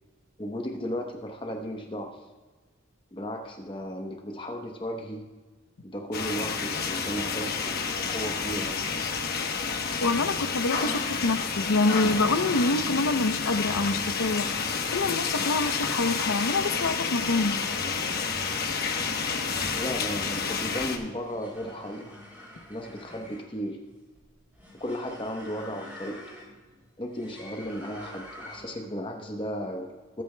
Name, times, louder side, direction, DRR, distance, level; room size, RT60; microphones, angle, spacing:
voice 1, 0.4-2.2 3.1-5.2 5.8-7.8 8.1-8.7 19.7-22.1 22.7-23.8 24.8-26.2 27.0-30.2, equal, 25° left, 2 dB, 0.9 m, -35 dB
sound 1, 6.1-21.0, left 5 dB, 45° left, 1.0 m, -29 dB
voice 2, 10.0-14.5 14.9-17.6, left 3 dB, 80° left, 10 dB, 0.7 m, -26 dB
sound 2, 21.2-28.9, left 1 dB, 10° right, 3.0 m, -47 dB
21.0 x 9.2 x 2.2 m, 1.3 s
head